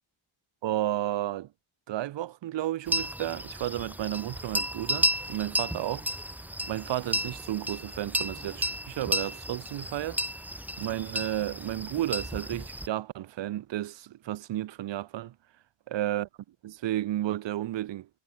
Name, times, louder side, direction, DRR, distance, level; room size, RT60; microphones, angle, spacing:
voice 1, 0.6-1.5 1.9-6.3 6.6-10.2 10.8-15.3 15.9-16.3 16.6-18.1, right 13 dB, 65° right, 0.6 m, -32 dB
sound 1, 2.9-12.9, right 1 dB, 5° right, 1.2 m, -33 dB
wide cardioid pair, 125°, 49 cm